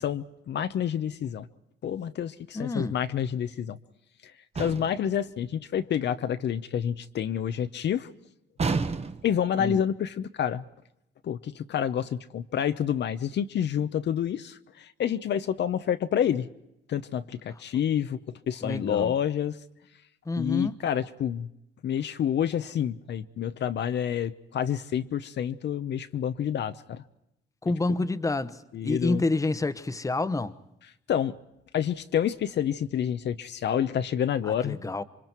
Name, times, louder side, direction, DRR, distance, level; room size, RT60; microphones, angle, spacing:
voice 1, 0.0-1.5 1.8-3.8 4.2-8.1 9.2-10.6 11.2-16.5 16.9-18.2 18.5-19.6 20.4-21.5 21.8-27.0 28.7-29.2 31.1-31.3 31.7-34.8, left 9 dB, 60° left, 0.9 m, -28 dB
voice 2, 2.5-3.0 9.6-9.8 18.6-19.1 20.2-20.7 27.6-30.5 34.4-35.0, left 2 dB, 15° left, 1.1 m, -28 dB
sound 1, 4.6-5.1 8.6-9.4, right 4 dB, 30° right, 1.3 m, -29 dB
28.0 x 24.0 x 4.6 m
cardioid pair, 90°, 20 cm